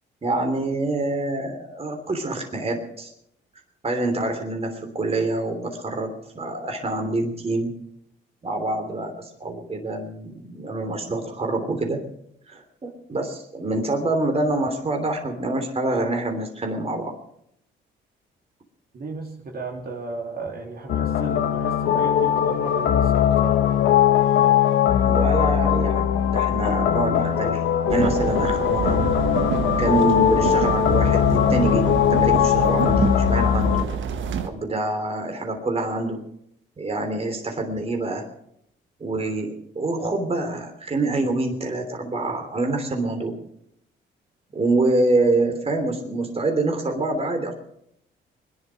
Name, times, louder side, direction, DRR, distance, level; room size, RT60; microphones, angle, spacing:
voice 1, 0.2-3.1 3.8-7.7 8.4-12.0 12.5-17.1 25.0-29.0 29.8-31.8 32.1-33.8 34.4-36.2 36.8-38.2 39.0-43.3 44.5-47.5, right 2 dB, 30° right, 4 dB, 3.2 m, -26 dB
voice 2, 18.9-23.6, right 3 dB, 50° right, 0 dB, 3.1 m, -35 dB
sound 1, 20.9-33.8, left 10 dB, 80° left, 1.4 m, -20 dB
sound 2, 27.9-34.5, right 7 dB, 75° right, 1.6 m, -27 dB
21.0 x 11.0 x 6.3 m, 0.74 s
cardioid pair, 90°, 20 cm